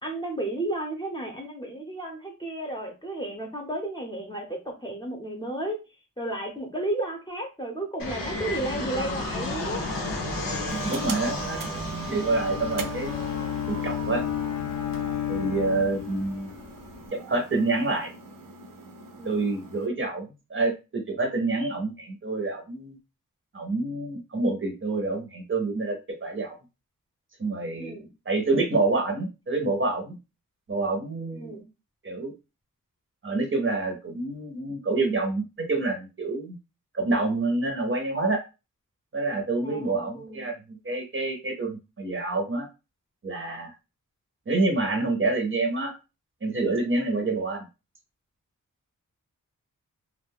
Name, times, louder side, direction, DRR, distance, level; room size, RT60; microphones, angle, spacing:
voice 1, 0.0-5.8 6.2-9.8 19.2-19.5 27.8-28.1 31.3-31.6 39.6-40.5 47.1-47.3, right 1 dB, 15° left, 0 dB, 0.7 m, -33 dB
Fixed-wing aircraft airplane, 8.0-17.0, left 2 dB, 85° left, 0.8 m, -34 dB
voice 2, 10.7-13.1 13.7-14.2 15.3-16.6 17.1-18.1 19.2-23.0 23.5-26.6 27.4-27.9 28.3-30.2 30.7-31.5 32.0-32.3 33.2-36.6 36.9-38.4 39.1-42.7 43.2-43.7 44.5-45.9 46.4-47.6, right 3 dB, 40° right, 2 dB, 0.6 m, -27 dB
sound 1, 10.7-19.9, right 5 dB, 80° right, 0.5 m, -40 dB
Bowed string instrument, 11.9-16.6, left 10 dB, 60° left, 0.4 m, -32 dB
2.3 x 2.1 x 3.5 m, 0.28 s
wide cardioid pair, 135°, 33 cm